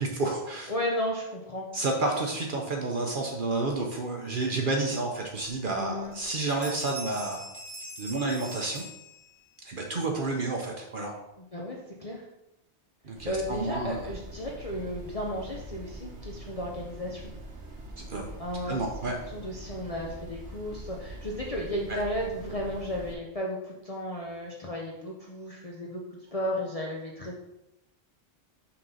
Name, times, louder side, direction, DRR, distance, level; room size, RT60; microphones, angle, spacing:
voice 1, 0.0-0.7 1.7-7.4 8.0-8.8 9.6-11.1 13.0-14.0 18.0-18.3 18.7-19.2 21.9-22.0, right 2 dB, 55° right, 1 dB, 0.9 m, -30 dB
voice 2, 0.7-1.7 5.7-6.1 11.4-12.3 13.3-17.3 18.4-18.8 19.3-26.0 26.3-27.4, equal, 35° left, -2 dB, 0.8 m, -34 dB
sound 1, 6.1-6.2 6.5-9.6, equal, 15° left, 1.2 m, -43 dB
sound 2, 13.1-23.1, right 1 dB, 85° right, 1.3 m, -43 dB
5.8 x 3.8 x 5.5 m, 0.90 s
omnidirectional pair, 1.1 m